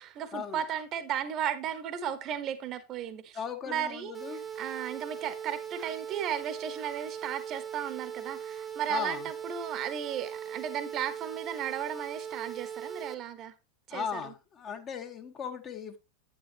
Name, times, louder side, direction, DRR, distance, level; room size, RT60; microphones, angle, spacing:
voice 1, 0.0-13.5 13.9-14.3, right 9 dB, 35° right, 1.2 m, -35 dB
voice 2, 3.3-4.4 8.9-9.3 13.9-16.0, left 7 dB, 25° left, 1.4 m, -37 dB
sound 1, 4.1-13.1, right 8 dB, 10° right, 1.2 m, -40 dB
10.0 x 9.0 x 3.0 m
figure-of-eight pair, 90°, 0 cm